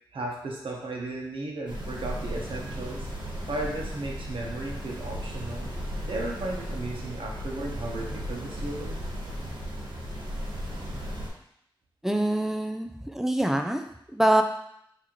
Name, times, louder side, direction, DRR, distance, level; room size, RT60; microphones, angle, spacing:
voice 1, 0.1-3.1 3.5-5.7 6.1-9.0, right 2 dB, 85° right, -1 dB, 1.0 m, -35 dB
sound 1, 1.7-11.3, equal, 60° right, 1.3 m, -35 dB
voice 2, 12.0-13.8 14.1-14.4, right 1 dB, 5° right, 5 dB, 0.4 m, -24 dB
6.1 x 2.9 x 3.0 m, 0.75 s
wide cardioid pair, 115°, 9 cm